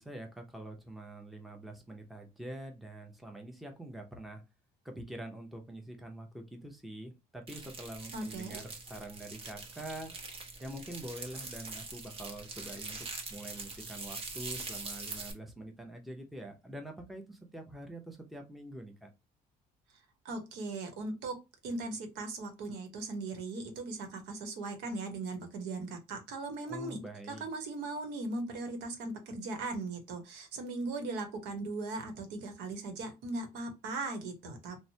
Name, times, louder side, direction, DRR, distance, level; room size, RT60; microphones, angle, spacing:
voice 1, 0.0-4.4 4.8-10.1 10.6-19.1 26.7-27.4, right 1 dB, ahead, 0.7 m, -45 dB
sound 1, 7.5-15.3, right 3 dB, 35° right, 0.9 m, -43 dB
voice 2, 8.1-8.6 20.2-21.3 21.6-27.0 27.3-34.8, right 3 dB, 85° right, 1.0 m, -38 dB
3.0 x 2.1 x 2.7 m
cardioid pair, 110°, 17 cm